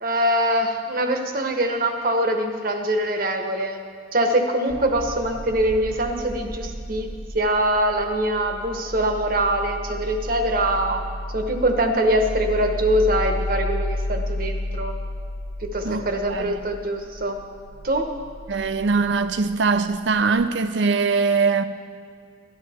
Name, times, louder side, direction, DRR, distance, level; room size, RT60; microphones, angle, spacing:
voice 1, 0.0-3.8 4.1-11.0 11.3-15.0 15.6-17.4 17.8-18.2, right 1 dB, 50° right, 1.0 m, -23 dB
sound 1, 4.7-20.4, left 1 dB, 90° left, 1.2 m, -33 dB
voice 2, 15.8-16.6 18.5-21.6, right 4 dB, 70° right, 0.5 m, -22 dB
12.5 x 11.5 x 4.3 m
head